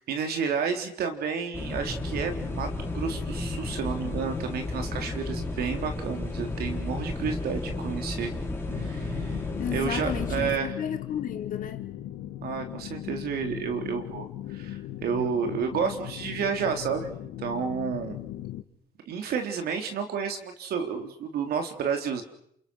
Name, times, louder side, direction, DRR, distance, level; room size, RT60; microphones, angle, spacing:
voice 1, 0.0-2.7 2.9-8.3 8.7-9.4 9.7-10.7 12.4-18.2 19.1-22.2, right 6 dB, 65° right, 3.8 m, -31 dB
sound 1, 1.5-10.6, left 2 dB, 15° left, 4.4 m, -33 dB
sound 2, 8.7-18.6, left 13 dB, 85° left, 2.3 m, -38 dB
voice 2, 9.6-11.8, left 9 dB, 55° left, 3.9 m, -33 dB
29.0 x 28.0 x 6.4 m
cardioid pair, 110°, 17 cm